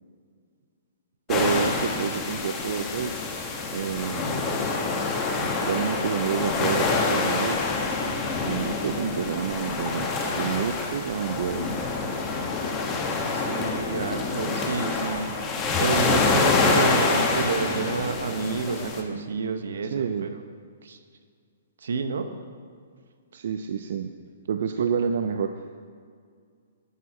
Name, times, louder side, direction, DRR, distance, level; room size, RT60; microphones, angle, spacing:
sound 1, 1.3-19.0, left 3 dB, 20° left, 0.8 m, -26 dB
voice 1, 1.3-3.1 3.7-4.4 5.7-7.6 8.4-11.7 19.1-19.2 19.9-20.3 23.3-24.1 24.5-25.6, right 7 dB, 60° right, 7 dB, 0.4 m, -28 dB
voice 2, 13.3-20.4 20.8-21.0 21.8-22.3, right 5 dB, 80° right, 8 dB, 0.8 m, -30 dB
11.0 x 5.9 x 4.3 m, 2.1 s
hypercardioid pair, 165°, 0 cm